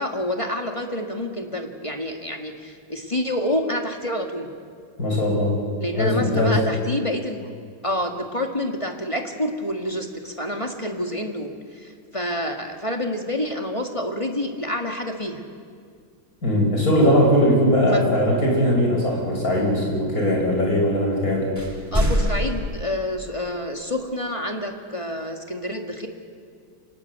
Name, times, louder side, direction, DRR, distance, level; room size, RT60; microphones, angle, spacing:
voice 1, 0.0-4.5 5.8-7.5 7.8-15.4 17.9-18.0 21.9-26.1, left 1 dB, 15° left, 3 dB, 1.6 m, -28 dB
voice 2, 5.0-5.5 5.9-6.6 16.4-21.5, equal, 45° left, -1 dB, 6.5 m, -20 dB
sound 1, 21.6-22.7, equal, 10° right, 2.9 m, -23 dB
26.0 x 20.0 x 8.1 m, 2.1 s
omnidirectional pair, 2.2 m